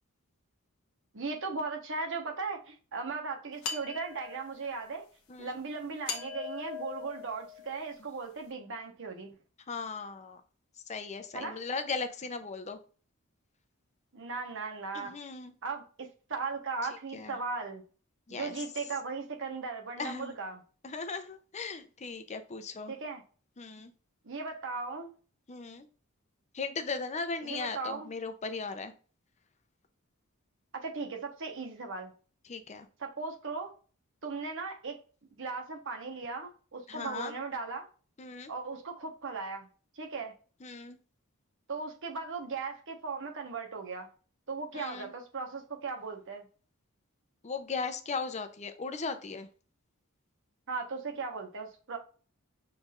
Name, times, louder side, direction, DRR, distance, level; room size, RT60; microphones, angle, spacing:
voice 1, 1.1-5.1 5.4-9.3 11.3-11.6 14.1-15.1 15.6-17.8 18.3-20.6 22.9-23.2 24.2-25.1 27.4-28.1 30.7-32.1 33.0-33.7 34.2-35.0 35.4-37.9 38.5-39.7 39.9-40.3 41.7-44.1 44.5-46.5 50.7-52.0, right 4 dB, 60° right, 1.1 m, -37 dB
sound 1, 3.6-4.7 6.1-7.9, left 7 dB, 75° left, 1.1 m, -40 dB
voice 2, 9.7-10.4 10.9-12.8 14.9-15.5 17.1-17.4 18.3-18.5 20.0-20.3 20.8-22.9 23.6-23.9 25.5-25.9 26.5-28.9 32.5-32.9 36.9-37.3 38.2-38.5 40.6-41.0 44.7-45.1 47.4-49.5, left 4 dB, 35° left, 0.6 m, -37 dB
6.3 x 3.4 x 2.5 m
head